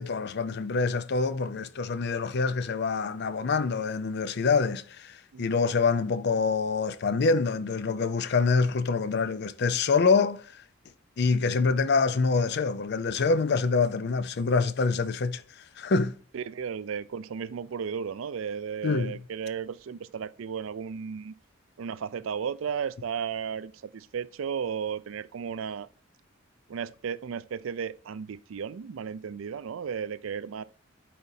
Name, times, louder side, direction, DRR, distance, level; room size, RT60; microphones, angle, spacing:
voice 1, 0.0-10.6 11.2-15.4 15.8-16.2 18.8-19.2, left 4 dB, 55° left, 0.5 m, -26 dB
voice 2, 16.3-21.3 21.8-25.9 26.7-30.6, right 7 dB, 75° right, 0.4 m, -34 dB
12.0 x 4.3 x 2.7 m
head